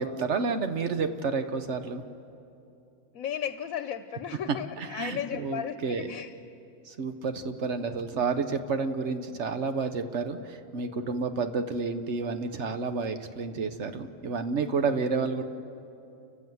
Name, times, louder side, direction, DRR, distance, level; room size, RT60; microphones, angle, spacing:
voice 1, 0.0-2.0 4.8-6.1 6.8-15.4, right 4 dB, 60° right, 8 dB, 1.2 m, -30 dB
voice 2, 3.1-6.3 10.9-11.1, left 9 dB, 85° left, 10 dB, 1.1 m, -35 dB
29.5 x 15.0 x 7.8 m, 2.8 s
omnidirectional pair, 1.4 m